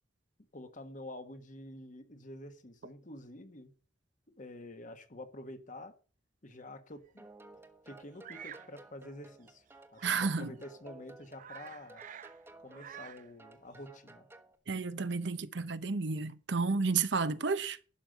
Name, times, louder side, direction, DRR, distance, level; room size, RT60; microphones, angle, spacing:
voice 1, 0.5-3.7 4.4-5.9 6.4-7.3 7.8-9.6 9.9-12.0 12.6-14.3, left 1 dB, 40° left, 1.4 m, -48 dB
sound 1, 7.2-14.5, right 2 dB, 15° right, 1.2 m, -55 dB
Bird vocalization bird call bird song, 8.2-8.7 10.0-10.4 10.9-11.0 11.2-12.4 12.6-13.3, right 9 dB, 45° right, 0.5 m, -48 dB
voice 2, 10.0-10.5 14.7-17.8, right 4 dB, 65° right, 0.8 m, -31 dB
12.0 x 5.4 x 7.7 m
head